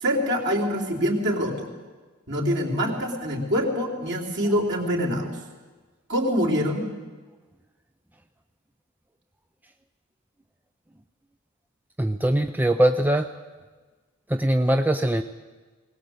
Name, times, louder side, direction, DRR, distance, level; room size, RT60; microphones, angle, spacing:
voice 1, 0.0-1.7 2.3-5.3 6.1-6.9, equal, 55° right, 1 dB, 3.7 m, -25 dB
voice 2, 12.0-13.2 14.3-15.2, right 1 dB, 10° right, 7 dB, 0.6 m, -21 dB
20.5 x 18.5 x 8.0 m, 1.3 s
head